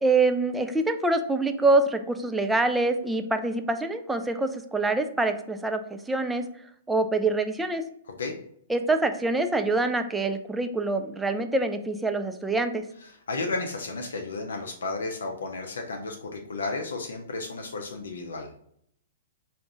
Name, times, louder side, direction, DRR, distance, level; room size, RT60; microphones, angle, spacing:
voice 1, 0.0-6.5 6.9-7.8 8.7-12.9, right 2 dB, 5° right, 7 dB, 0.4 m, -25 dB
voice 2, 13.3-18.5, left 3 dB, 65° left, 2 dB, 0.5 m, -33 dB
4.7 x 2.5 x 3.4 m, 0.69 s
figure-of-eight pair, 110°, 0 cm